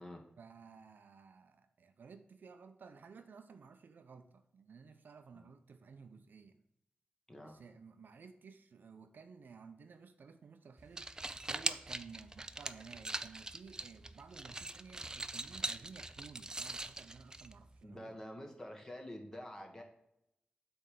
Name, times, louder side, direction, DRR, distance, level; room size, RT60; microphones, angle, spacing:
voice 1, 0.4-6.6 7.4-18.2, right 5 dB, 70° right, 8 dB, 0.6 m, -55 dB
sound 1, 10.8-17.8, right 2 dB, 20° right, 0.4 m, -42 dB
voice 2, 17.8-19.8, left 1 dB, 15° left, 2 dB, 1.4 m, -47 dB
8.4 x 3.5 x 6.5 m, 0.80 s
wide cardioid pair, 120°, 3 cm